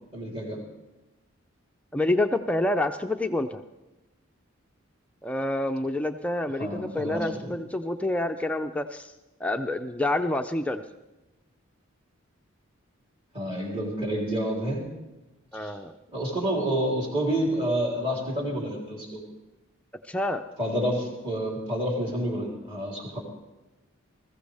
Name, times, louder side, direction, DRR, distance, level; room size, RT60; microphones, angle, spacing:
voice 1, 0.1-0.6 6.6-7.5 13.3-14.9 15.6-15.7 16.1-19.2 20.6-23.2, right 1 dB, 25° right, -3 dB, 3.4 m, -29 dB
voice 2, 1.9-3.6 5.2-9.1 9.4-10.8 15.5-15.9 20.1-20.4, left 1 dB, 5° left, 6 dB, 0.4 m, -27 dB
20.5 x 15.0 x 3.4 m, 1.0 s
head